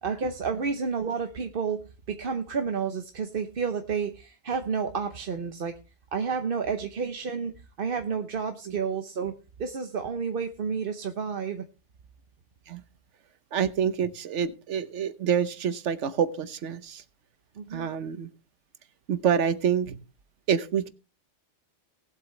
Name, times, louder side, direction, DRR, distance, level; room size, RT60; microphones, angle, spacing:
voice 1, 0.0-5.7 6.1-7.5 7.8-9.3 9.6-11.6 17.6-17.9, right 5 dB, 55° right, 7 dB, 1.0 m, -30 dB
voice 2, 13.5-17.0 17.7-18.3 19.1-20.0 20.5-20.9, right 8 dB, 85° right, 13 dB, 1.2 m, -27 dB
19.0 x 7.7 x 3.2 m, 0.32 s
omnidirectional pair, 1.2 m